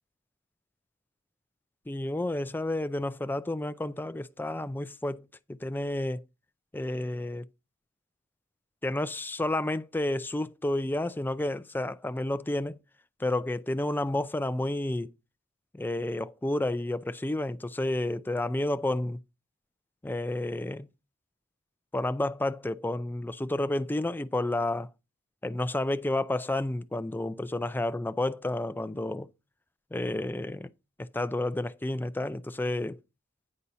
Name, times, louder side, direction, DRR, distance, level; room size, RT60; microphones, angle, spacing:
voice 1, 1.9-6.2 6.7-7.5 8.8-12.8 13.2-15.1 15.7-19.2 20.0-20.9 21.9-24.9 25.4-29.3 29.9-30.7 31.0-33.0, left 1 dB, 10° left, 0.4 m, -30 dB
9.6 x 4.1 x 5.6 m
head